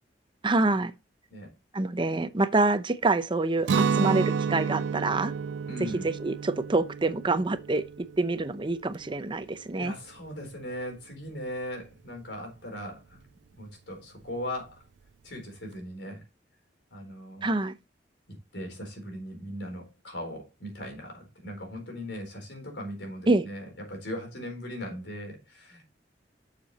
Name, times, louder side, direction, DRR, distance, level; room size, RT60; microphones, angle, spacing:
voice 1, 0.4-0.9 1.7-5.3 6.0-7.8 8.2-9.9 17.4-17.7 23.3-23.5, right 2 dB, 30° right, 0.6 m, -26 dB
Guitar, 3.6-9.5, right 6 dB, 90° right, 0.4 m, -30 dB
voice 2, 5.7-6.1 9.8-14.8 15.2-16.2 16.9-17.5 18.3-25.8, equal, 90° left, 4.1 m, -39 dB
8.1 x 6.7 x 4.0 m
head